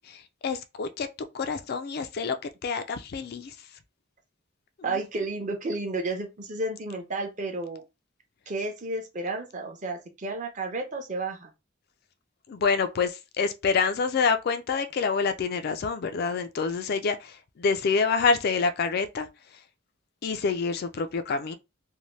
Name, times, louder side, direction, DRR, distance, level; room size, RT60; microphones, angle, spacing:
voice 1, 0.4-1.1 1.3-2.4 2.6-3.5 4.9-5.0 12.5-19.3 20.2-21.6, left 5 dB, 50° left, 0.3 m, -27 dB
voice 2, 4.8-7.8 8.5-11.5, right 2 dB, 40° right, 0.7 m, -32 dB
2.7 x 2.1 x 3.1 m
head